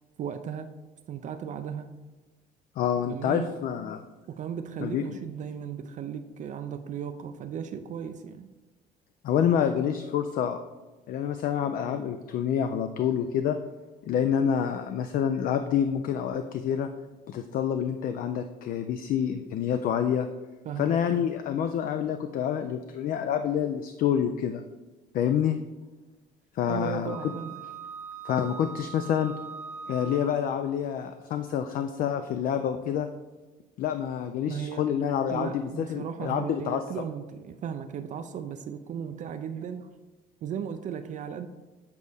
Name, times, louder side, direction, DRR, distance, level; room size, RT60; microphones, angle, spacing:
voice 1, 0.2-0.7 1.1-1.9 3.1-3.5 4.3-8.5 20.7-21.2 26.7-27.5 34.5-34.9 35.3-39.9 40.4-41.5, right 8 dB, 45° right, 8 dB, 0.4 m, -36 dB
voice 2, 2.8-4.0 4.8-5.0 9.2-10.6 11.1-13.6 14.0-16.9 17.3-20.3 20.8-24.6 25.1-25.6 26.5-27.3 28.2-29.3 29.9-33.1 33.8-35.6 35.9-36.8, left 8 dB, 55° left, 8 dB, 0.4 m, -27 dB
Wind instrument woodwind instrument, 27.1-30.7, right 6 dB, 10° right, 0.8 m, -41 dB
8.3 x 4.1 x 3.4 m, 1.2 s
cardioid pair, 110°, 17 cm